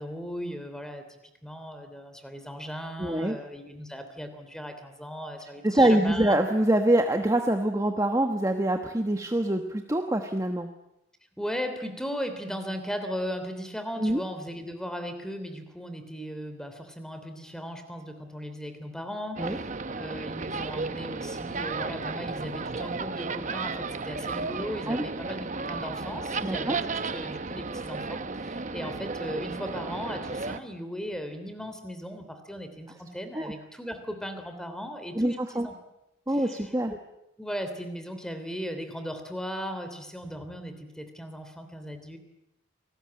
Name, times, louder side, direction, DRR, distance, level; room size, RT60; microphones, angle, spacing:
voice 1, 0.0-6.7 11.4-35.7 36.3-36.7 37.4-42.2, equal, 5° left, 8 dB, 3.1 m, -37 dB
voice 2, 3.0-3.3 5.6-10.7 14.0-14.2 19.4-19.6 24.9-25.0 26.4-26.8 33.3-33.5 35.1-35.7 36.3-36.9, right 1 dB, 15° right, 5 dB, 1.2 m, -25 dB
sound 1, 19.4-30.6, right 4 dB, 40° right, 1.0 m, -34 dB
28.5 x 19.5 x 8.7 m, 0.88 s
head